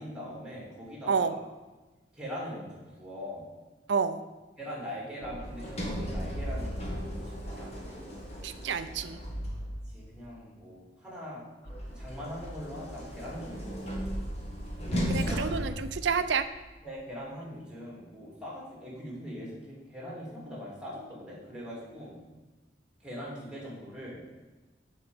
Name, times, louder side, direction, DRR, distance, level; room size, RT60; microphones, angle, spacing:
voice 1, 0.0-1.3 2.1-3.5 4.6-8.7 9.9-11.4 11.9-14.0 14.8-15.4 16.8-22.2 23.0-24.2, equal, 5° right, -4 dB, 2.8 m, -42 dB
voice 2, 3.9-4.2 8.4-9.2 15.1-16.5, right 5 dB, 80° right, 12 dB, 0.5 m, -29 dB
Sliding door, 5.2-10.1 11.6-16.6, equal, 40° left, 1.7 m, -36 dB
7.9 x 4.8 x 7.0 m, 1.2 s
head